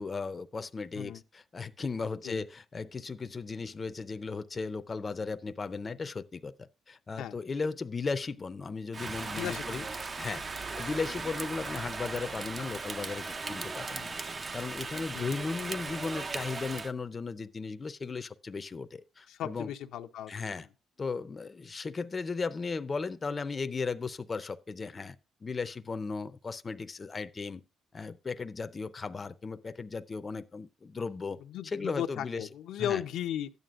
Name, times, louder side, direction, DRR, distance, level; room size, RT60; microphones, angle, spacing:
voice 1, 0.0-9.8 10.2-10.4 10.8-14.2 14.5-19.7 20.3-20.7 21.0-25.2 25.4-27.6 27.9-31.4 31.6-32.5 32.8-33.0, left 4 dB, 35° left, 0.5 m, -36 dB
Rain, 8.9-16.9, right 3 dB, 35° right, 0.5 m, -38 dB
voice 2, 9.4-9.9 15.1-15.3 19.3-20.7 31.4-33.5, left 10 dB, 85° left, 0.6 m, -36 dB
12.5 x 9.3 x 2.5 m
cardioid pair, 90°, 0 cm